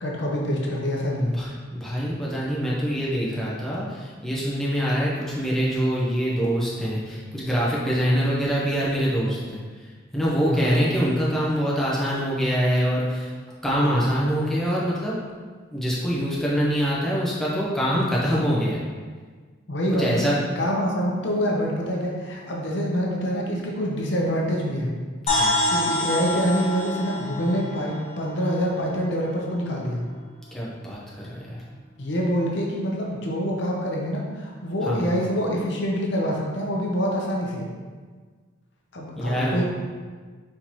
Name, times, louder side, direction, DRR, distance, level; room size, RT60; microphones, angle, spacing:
voice 1, 0.0-1.4 10.5-10.8 19.7-25.0 25.7-30.0 32.0-37.7 38.9-39.6, equal, 65° left, -2 dB, 0.7 m, -26 dB
voice 2, 1.2-9.6 10.1-13.3 13.6-15.2 15.7-18.8 20.0-20.4 25.3-25.6 30.5-31.6 34.9-35.1 39.2-39.6, equal, ahead, -7 dB, 0.8 m, -24 dB
sound 1, 25.3-29.0, left 1 dB, 30° left, 0.7 m, -26 dB
4.3 x 3.8 x 3.0 m, 1.5 s
head